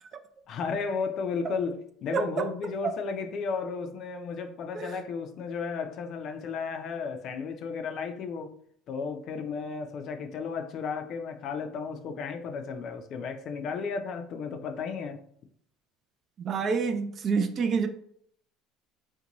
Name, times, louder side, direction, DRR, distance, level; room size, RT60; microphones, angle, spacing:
voice 1, 0.5-8.5 8.9-15.2, left 5 dB, 55° left, 0.4 m, -34 dB
voice 2, 2.1-2.5 4.8-4.9 16.4-17.9, right 5 dB, 40° right, 0.4 m, -27 dB
2.6 x 2.2 x 2.8 m
supercardioid pair, 110°, 0 cm